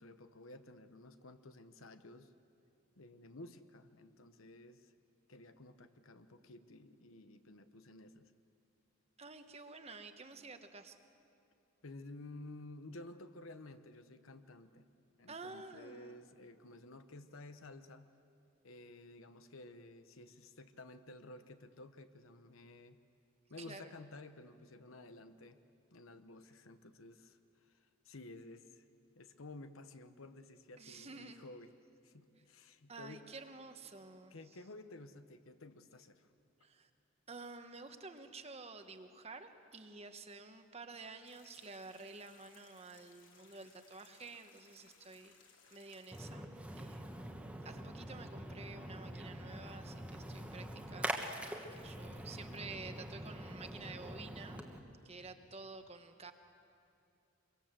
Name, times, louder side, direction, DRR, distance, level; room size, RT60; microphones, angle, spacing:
voice 1, 0.0-2.3 3.0-4.9 5.3-8.3 11.8-14.9 15.2-18.1 18.6-23.0 23.5-25.6 25.9-28.8 29.1-31.7 32.0-33.2 34.3-36.3, left 2 dB, 75° left, 10 dB, 1.0 m, -53 dB
voice 2, 9.2-11.0 15.3-16.2 23.6-23.9 30.8-31.5 32.9-34.4 36.6-36.9 37.3-45.4 45.7-46.4 46.8-47.4 47.6-54.6 55.0-56.3, right 3 dB, 30° right, 7 dB, 1.2 m, -51 dB
sound 1, 41.2-46.3, left 5 dB, 60° left, 3.1 m, -65 dB
Splash splatter, 46.1-54.8, right 1 dB, 5° right, 1.3 m, -44 dB
25.5 x 23.0 x 7.6 m, 2.6 s
head